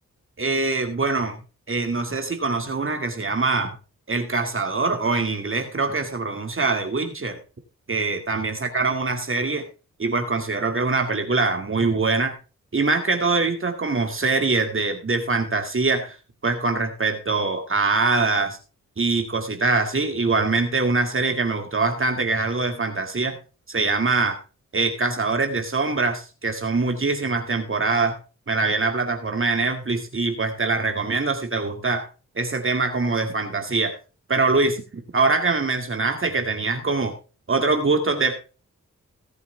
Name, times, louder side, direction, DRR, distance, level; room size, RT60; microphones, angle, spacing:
voice 1, 0.4-1.4 1.7-3.8 4.1-7.4 7.9-9.6 10.0-12.4 12.7-16.2 16.4-18.6 19.0-23.4 23.7-24.4 24.7-28.2 28.5-32.1 32.4-34.0 34.3-37.1 37.5-38.3, right 3 dB, 40° right, 4 dB, 2.3 m, -23 dB
17.5 x 8.0 x 3.5 m, 0.33 s
cardioid pair, 70°, 32 cm